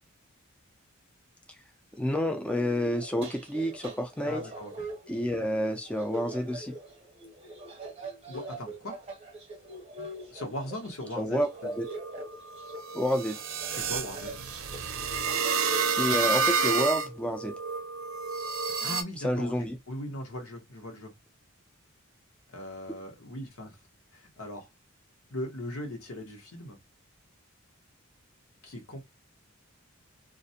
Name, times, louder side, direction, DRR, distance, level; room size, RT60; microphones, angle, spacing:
voice 1, 2.0-4.4 5.1-6.8 11.2-11.8 12.9-13.4 15.9-17.5 19.2-19.8, equal, 5° left, 0.3 m, -29 dB
sound 1, 2.9-15.9, right 1 dB, 30° right, 0.7 m, -43 dB
voice 2, 4.2-4.7 8.3-9.0 10.3-11.8 13.7-14.4 18.8-21.1 22.5-23.7 24.1-24.7 25.3-26.8 28.6-29.0, left 1 dB, 85° left, 1.0 m, -39 dB
sound 2, 11.5-19.0, right 5 dB, 70° right, 0.5 m, -30 dB
2.4 x 2.1 x 2.7 m
head